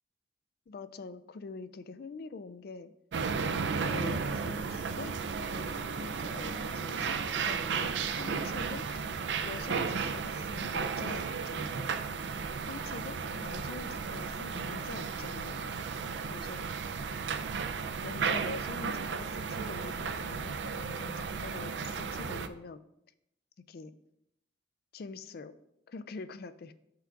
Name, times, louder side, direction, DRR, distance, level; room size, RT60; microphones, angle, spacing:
voice 1, 0.7-2.9 3.5-8.9 9.4-11.9 12.7-15.7 16.2-16.7 18.0-22.8 23.7-23.9 24.9-25.5 25.9-26.7, left 4 dB, 55° left, 13 dB, 0.4 m, -45 dB
sound 1, 3.1-22.5, right 5 dB, 80° right, 0.4 m, -34 dB
sound 2, 10.0-21.6, equal, 40° left, 1.5 m, -59 dB
5.8 x 3.8 x 5.8 m, 0.78 s
head